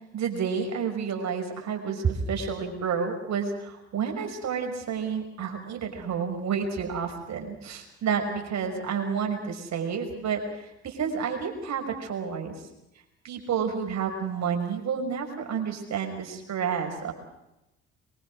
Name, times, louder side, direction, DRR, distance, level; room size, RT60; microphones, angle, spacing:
voice 1, 0.1-12.5 13.2-17.1, right 6 dB, 55° right, 4 dB, 6.1 m, -30 dB
24.0 x 23.0 x 6.4 m, 0.89 s
hypercardioid pair, 55°, 34 cm